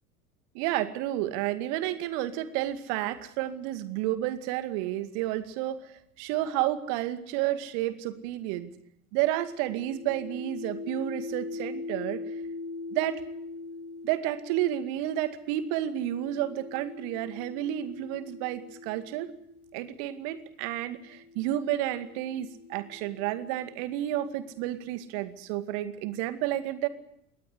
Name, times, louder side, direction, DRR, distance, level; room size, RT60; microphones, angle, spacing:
voice 1, 0.5-8.7 9.1-12.2 12.9-13.2 14.0-19.3 19.7-26.9, right 13 dB, 50° right, 11 dB, 2.2 m, -31 dB
sound 1, 9.6-19.9 20.8-24.6, left 3 dB, 70° left, 2.4 m, -42 dB
23.0 x 18.5 x 8.4 m, 0.74 s
figure-of-eight pair, 75°, 44 cm